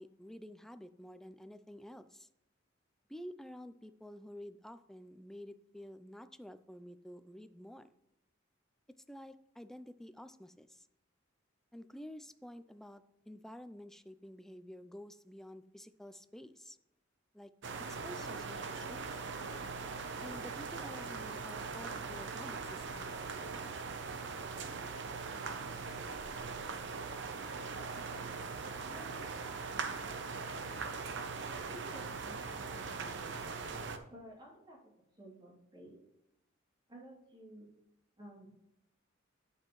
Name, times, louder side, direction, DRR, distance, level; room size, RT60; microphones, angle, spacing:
voice 1, 0.0-2.3 3.1-7.9 9.1-10.9 11.7-16.8 17.3-17.5 17.9-19.2 20.2-23.1, equal, ahead, 11 dB, 0.4 m, -50 dB
sound 1, 17.6-34.0, right 4 dB, 65° right, 0.8 m, -41 dB
voice 2, 27.7-28.1 28.9-29.5 31.3-32.4 32.7-33.3 34.1-36.0 36.9-37.7 38.2-38.6, right 1 dB, 25° right, -3 dB, 2.9 m, -54 dB
9.9 x 8.2 x 3.1 m, 0.84 s
head